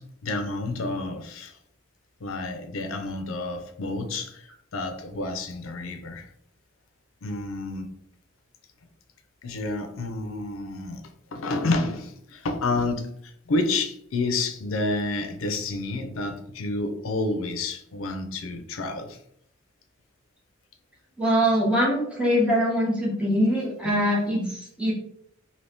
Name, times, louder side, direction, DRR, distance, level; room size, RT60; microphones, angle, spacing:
voice 1, 0.0-1.6 2.2-6.3 7.2-7.9 9.4-11.0 11.3-19.2 23.8-24.0, left 2 dB, 75° left, 0.6 m, -29 dB
voice 2, 21.2-24.9, equal, 5° right, 0.7 m, -23 dB
2.8 x 2.7 x 3.4 m
head